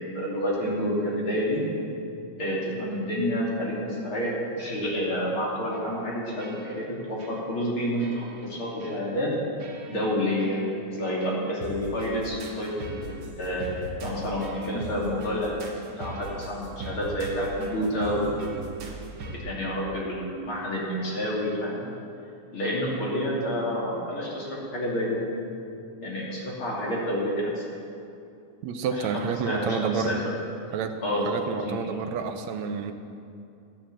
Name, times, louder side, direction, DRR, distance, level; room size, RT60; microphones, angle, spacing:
voice 1, 0.0-1.6 2.4-9.3 9.9-10.6 10.9-13.7 14.0-18.5 19.3-21.8 22.5-25.2 26.0-27.7 29.0-30.2 31.0-32.0, equal, 40° left, -5 dB, 3.5 m, -29 dB
sound 1, 5.7-6.1 6.4-6.9 7.2-7.7 8.0-8.5 8.8-9.0 9.6-10.1 10.4-10.6 11.2-19.4, right 2 dB, 50° right, 2.0 m, -40 dB
voice 2, 28.6-30.2 30.7-32.9, right 5 dB, 70° right, 7 dB, 1.8 m, -29 dB
15.5 x 8.8 x 7.6 m, 2.6 s
omnidirectional pair, 3.6 m